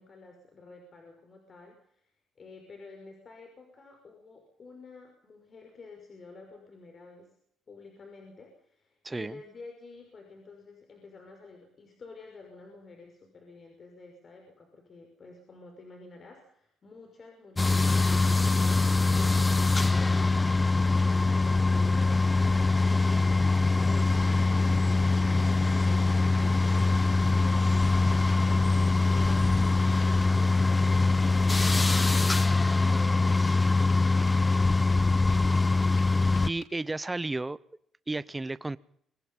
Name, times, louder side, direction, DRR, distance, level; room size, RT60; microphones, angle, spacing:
voice 1, 0.0-2.1 2.4-7.3 7.7-35.4, left 3 dB, 40° left, 5.7 m, -50 dB
voice 2, 9.0-9.4 36.5-37.6 38.1-38.8, right 2 dB, 15° right, 0.9 m, -32 dB
sound 1, 17.6-36.5, left 3 dB, 15° left, 0.7 m, -23 dB
Tap, 26.8-27.3 27.8-28.4 29.2-29.3 30.0-30.3 30.8-31.5 32.1-32.6 33.3-33.6 33.9-35.7 36.0-36.7, left 8 dB, 75° left, 3.8 m, -54 dB
24.5 x 21.0 x 5.6 m
cardioid pair, 110°, 0 cm